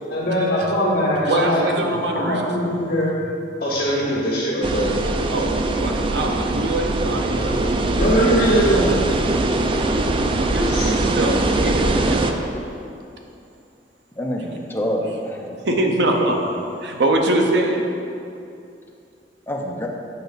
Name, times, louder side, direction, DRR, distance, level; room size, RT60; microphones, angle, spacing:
voice 1, 0.1-3.1 3.6-4.9 7.3-7.5 7.8-8.9 10.7-10.9, equal, 55° left, -11 dB, 1.6 m, -21 dB
voice 2, 1.2-2.5 5.3-7.8 10.3-12.4 15.5-16.4 16.8-17.8, right 1 dB, 70° right, 2 dB, 0.8 m, -23 dB
sound 1, 4.6-12.3, right 2 dB, 30° right, 0.4 m, -21 dB
voice 3, 14.2-15.6 19.5-19.9, equal, 10° left, -1 dB, 0.6 m, -26 dB
6.9 x 5.3 x 4.0 m, 2.6 s
head